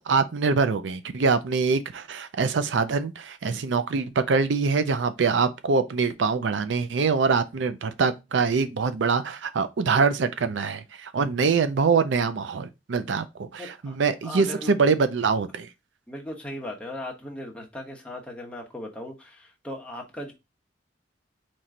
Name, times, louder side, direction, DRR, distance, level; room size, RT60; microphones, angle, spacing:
voice 1, 0.1-15.7, right 4 dB, 75° right, 0.5 m, -24 dB
voice 2, 13.6-14.0 14.2-14.7 16.1-20.3, left 1 dB, 5° left, 1.1 m, -38 dB
4.3 x 3.1 x 3.7 m
head